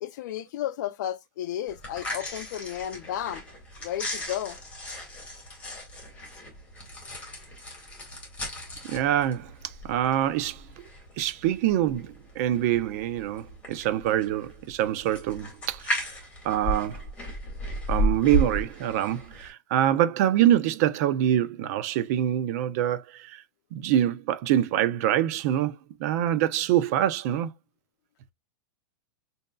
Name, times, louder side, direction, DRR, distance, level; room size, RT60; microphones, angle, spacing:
voice 1, 0.0-3.4 3.8-4.6, left 11 dB, 65° left, 0.6 m, -33 dB
sound 1, 1.7-19.5, equal, 10° left, 1.9 m, -35 dB
voice 2, 8.8-9.5 9.8-10.6 11.2-16.1 16.4-17.0 17.9-23.4 23.7-27.5, right 11 dB, 50° right, 0.6 m, -25 dB
6.3 x 2.7 x 2.2 m
supercardioid pair, 145°, 11 cm